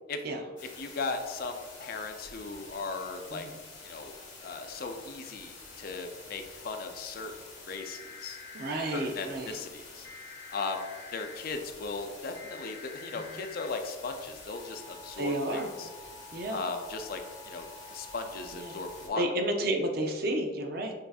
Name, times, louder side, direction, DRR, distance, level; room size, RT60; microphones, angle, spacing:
sound 1, 0.6-19.1, left 3 dB, 75° left, 1.5 m, -47 dB
voice 1, 0.8-3.5 3.8-4.2 4.4-7.3 7.7-8.4 8.9-10.1 10.5-10.8 11.1-15.9 16.5-19.2, left 4 dB, 50° left, 6 dB, 0.4 m, -37 dB
voice 2, 8.5-9.5 13.1-13.2 15.2-15.7 16.3-16.6 18.5-18.7 19.2-20.9, right 1 dB, 50° right, 3 dB, 0.5 m, -31 dB
6.4 x 2.7 x 2.3 m, 1.3 s
head